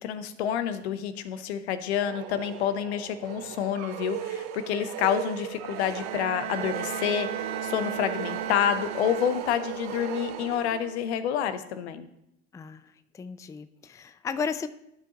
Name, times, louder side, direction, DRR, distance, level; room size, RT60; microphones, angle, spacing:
voice 1, 0.0-12.1, left 9 dB, 75° left, 11 dB, 0.8 m, -28 dB
sound 1, 2.0-11.1, right 11 dB, 55° right, 0.8 m, -37 dB
Bowed string instrument, 5.6-9.7, right 7 dB, 75° right, 3.2 m, -36 dB
voice 2, 12.5-12.8 13.1-14.7, left 5 dB, 10° left, 12 dB, 0.4 m, -34 dB
12.0 x 5.6 x 2.9 m, 0.82 s
hypercardioid pair, 80°, 33 cm